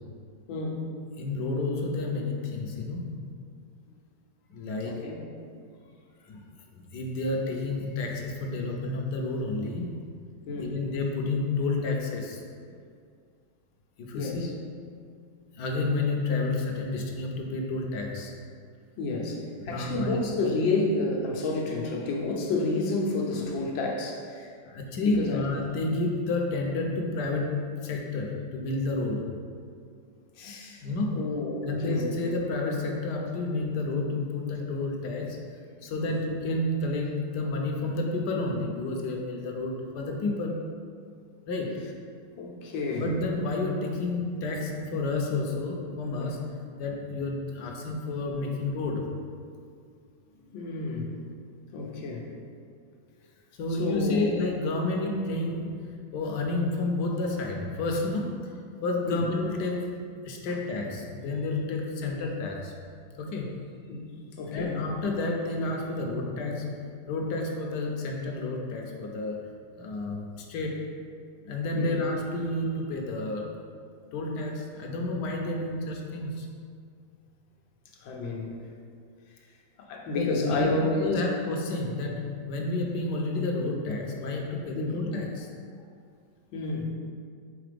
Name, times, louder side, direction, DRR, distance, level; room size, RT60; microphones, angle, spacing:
voice 1, 0.5-0.8 4.9-5.2 10.5-10.7 14.1-14.5 19.0-24.5 25.1-25.4 30.4-30.8 31.1-32.1 36.1-36.2 42.4-43.1 50.5-51.1 51.7-52.3 53.8-54.4 59.1-59.3 60.5-60.6 61.9-62.1 63.9-64.0 64.4-64.9 71.7-72.0 78.0-78.6 79.8-81.2 84.7-85.0 86.5-86.8, left 3 dB, 85° left, -1 dB, 1.6 m, -30 dB
voice 2, 1.2-3.4 4.5-5.1 6.3-6.4 6.7-10.2 10.5-12.4 14.0-15.0 15.5-18.3 19.6-20.2 24.7-29.4 30.8-31.3 31.6-35.4 35.8-40.7 41.5-41.9 43.0-49.1 53.6-58.5 58.8-62.7 63.2-63.6 64.5-69.5 69.7-70.9 71.4-73.6 74.1-76.5 80.1-85.5, left 2 dB, 70° left, 1 dB, 1.2 m, -30 dB
4.9 x 4.0 x 5.0 m, 2.2 s
omnidirectional pair, 2.0 m